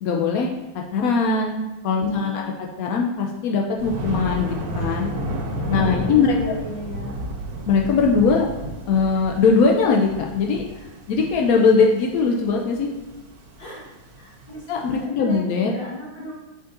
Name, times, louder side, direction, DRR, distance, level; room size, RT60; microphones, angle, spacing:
voice 1, 0.0-0.5 0.9-5.1 5.7-6.5 7.7-8.5 8.9-10.6 11.1-12.9 14.7-15.7, left 4 dB, 80° left, 0 dB, 0.7 m, -20 dB
voice 2, 2.0-2.6 5.7-7.1 10.7-10.9 13.6-13.8 14.2-14.7 14.9-16.3, equal, 30° left, -5 dB, 1.6 m, -36 dB
Thunder, 3.8-14.9, right 1 dB, 85° right, 1.9 m, -31 dB
7.3 x 5.1 x 2.6 m, 1.1 s
omnidirectional pair, 2.2 m